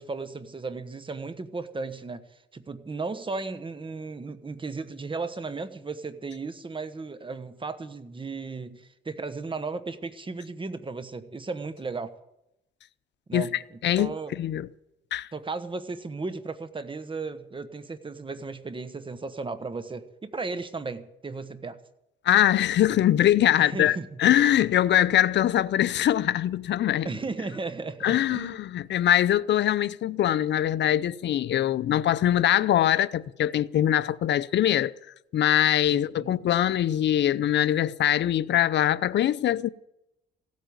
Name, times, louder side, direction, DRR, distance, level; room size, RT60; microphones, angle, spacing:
voice 1, 0.0-2.2 2.5-12.1 13.3-13.5 13.9-14.3 15.3-21.8 23.5-24.2 27.0-28.6 35.9-36.4, right 3 dB, 25° right, 1.3 m, -35 dB
voice 2, 14.4-14.7 15.1-15.3 22.2-27.1 28.0-34.9 35.3-39.7, left 11 dB, 65° left, 0.7 m, -23 dB
16.0 x 8.5 x 9.4 m
cardioid pair, 90°, 20 cm